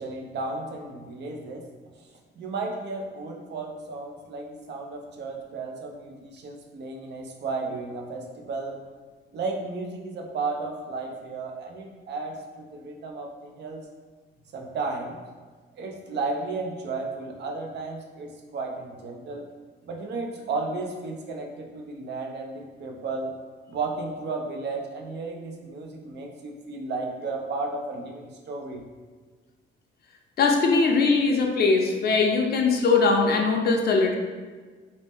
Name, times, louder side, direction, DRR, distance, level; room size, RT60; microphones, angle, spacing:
voice 1, 0.0-1.7 2.0-2.1 2.4-8.8 9.3-13.3 13.6-13.8 14.5-15.2 15.7-19.5 19.8-23.4 23.7-28.8, right 3 dB, 60° right, 1 dB, 0.5 m, -33 dB
voice 2, 30.4-34.1, left 4 dB, 55° left, 2 dB, 0.5 m, -21 dB
2.6 x 2.1 x 3.4 m, 1.4 s
cardioid pair, 90°, 20 cm